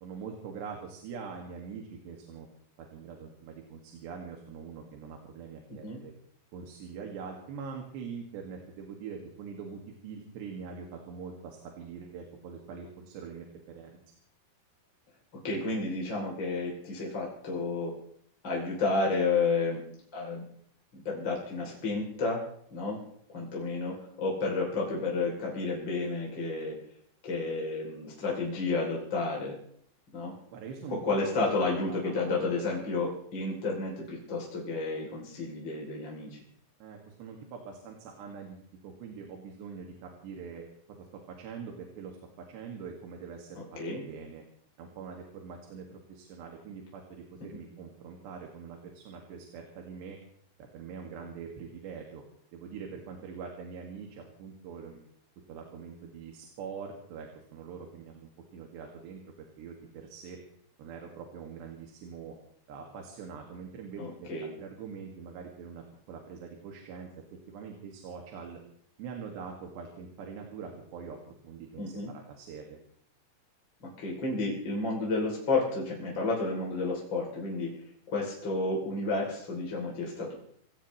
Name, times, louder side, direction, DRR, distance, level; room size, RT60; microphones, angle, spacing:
voice 1, 0.0-2.5 2.8-6.1 6.5-14.0 30.5-31.0 31.9-32.1 36.8-40.7 41.0-42.2 42.5-43.6 44.1-44.4 44.8-50.2 50.6-52.2 52.5-55.0 55.5-60.4 60.8-62.4 62.7-67.1 67.5-68.6 69.0-71.8 72.1-72.8, right 6 dB, 85° right, 1 dB, 4.2 m, -43 dB
voice 2, 15.4-17.9 18.4-20.4 20.9-23.0 23.3-26.8 27.2-29.6 30.1-30.3 30.9-36.4 43.6-44.0 64.0-64.5 71.8-72.1 73.8-80.3, left 3 dB, 30° left, -3 dB, 3.4 m, -31 dB
26.5 x 17.0 x 3.2 m, 0.65 s
omnidirectional pair, 4.8 m